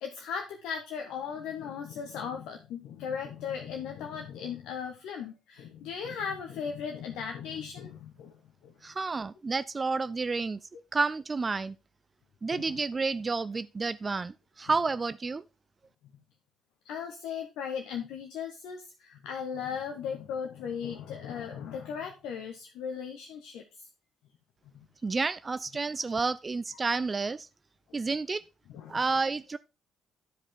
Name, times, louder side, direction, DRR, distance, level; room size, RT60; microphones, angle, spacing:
voice 1, 0.0-8.3 8.6-8.7 12.5-12.8 16.8-23.9 24.7-24.9 27.9-28.0 28.7-29.1, left 7 dB, 60° left, 0.8 m, -37 dB
voice 2, 8.8-10.6 10.9-11.7 12.4-15.4 25.0-27.4 27.9-28.4 28.9-29.6, right 4 dB, 30° right, 0.3 m, -30 dB
11.0 x 4.9 x 3.6 m
figure-of-eight pair, 45°, 0 cm